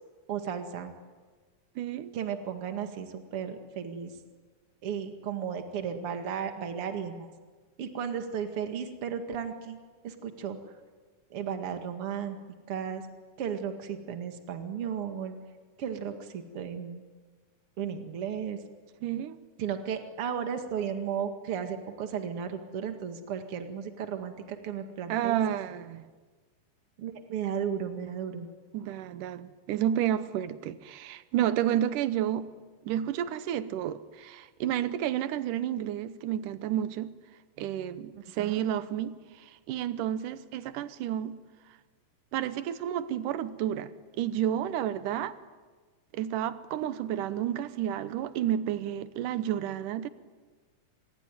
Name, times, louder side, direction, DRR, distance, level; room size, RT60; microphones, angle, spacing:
voice 1, 0.3-0.9 2.1-4.1 4.8-7.3 7.8-9.8 10.0-10.6 11.3-12.4 12.7-13.0 13.4-15.4 15.8-17.0 17.8-18.6 19.6-25.4 27.0-28.5 38.4-38.6, right 7 dB, 45° right, 2.7 m, -34 dB
voice 2, 1.8-2.1 19.0-19.4 25.1-26.1 28.7-32.5 32.9-37.1 37.6-41.4 42.3-43.9 44.2-45.4 46.1-50.1, right 11 dB, 75° right, 2.5 m, -31 dB
26.5 x 21.0 x 9.4 m
omnidirectional pair, 3.9 m